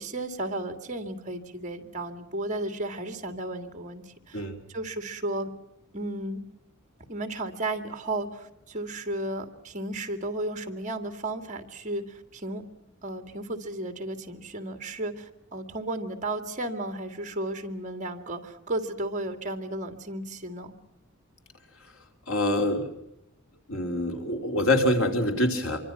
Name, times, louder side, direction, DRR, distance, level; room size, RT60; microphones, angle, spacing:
voice 1, 0.0-5.5 5.9-6.4 7.1-12.6 13.0-20.7, right 2 dB, 35° right, 7 dB, 2.5 m, -34 dB
voice 2, 22.3-22.9 23.7-25.8, left 1 dB, 70° left, 4 dB, 3.3 m, -25 dB
26.5 x 24.5 x 5.9 m, 0.86 s
head